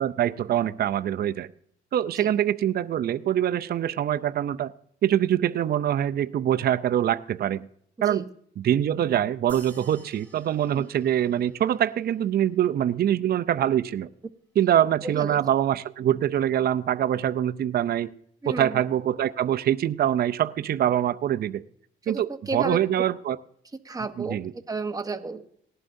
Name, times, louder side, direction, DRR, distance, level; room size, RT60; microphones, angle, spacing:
voice 1, 0.0-1.5 1.9-4.7 5.0-7.7 8.0-8.3 8.6-14.1 14.6-18.1 18.5-21.6 22.1-23.4 24.2-24.5, right 10 dB, 50° right, 11 dB, 0.5 m, -24 dB
voice 2, 8.0-8.3 10.7-10.9 15.0-15.4 18.4-18.8 22.0-22.8 23.8-24.4 24.7-25.5, right 3 dB, 20° right, 6 dB, 1.0 m, -32 dB
sound 1, 9.5-12.2, right 2 dB, 10° left, 3.8 m, -52 dB
18.5 x 11.0 x 2.6 m, 0.67 s
cardioid pair, 90°, 20 cm